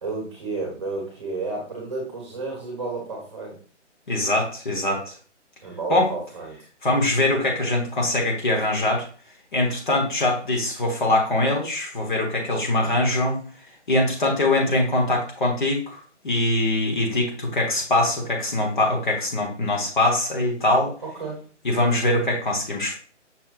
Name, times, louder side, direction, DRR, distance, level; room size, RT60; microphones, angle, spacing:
voice 1, 0.0-3.5 5.6-6.5 21.0-21.4, right 3 dB, 25° right, -2 dB, 1.1 m, -31 dB
voice 2, 4.1-5.1 5.9-6.1 6.8-9.1 9.5-13.4 13.9-20.9 21.6-22.9, left 1 dB, 40° left, 1 dB, 1.1 m, -22 dB
6.0 x 2.1 x 3.8 m, 0.40 s
hypercardioid pair, 165°, 36 cm